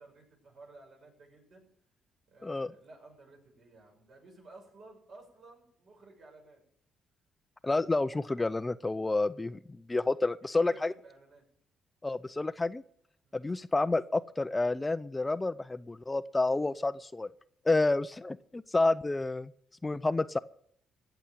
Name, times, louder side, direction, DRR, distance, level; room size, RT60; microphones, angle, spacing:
voice 1, 0.0-1.7 2.3-6.6 10.4-11.5 13.2-13.5, right 2 dB, 60° right, 0 dB, 7.0 m, -55 dB
voice 2, 7.6-9.6 9.9-10.9 12.0-12.8 13.3-17.3 17.7-19.5 19.8-20.4, left 2 dB, 20° left, 14 dB, 0.5 m, -29 dB
16.5 x 7.1 x 9.1 m, 0.67 s
cardioid pair, 90°, 0 cm